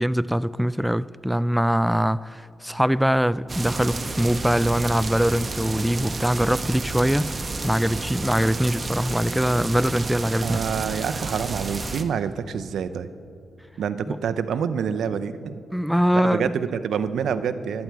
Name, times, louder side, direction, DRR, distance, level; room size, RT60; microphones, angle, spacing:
voice 1, 0.0-7.3 7.6-10.6 14.1-14.2 15.7-16.5, equal, ahead, 0.3 m, -22 dB
sound 1, 3.5-12.0, right 3 dB, 40° right, 1.0 m, -31 dB
voice 2, 10.4-13.1 13.8-15.6 16.2-17.8, right 7 dB, 85° right, 0.6 m, -27 dB
24.5 x 9.6 x 4.6 m
cardioid pair, 65°, 0 cm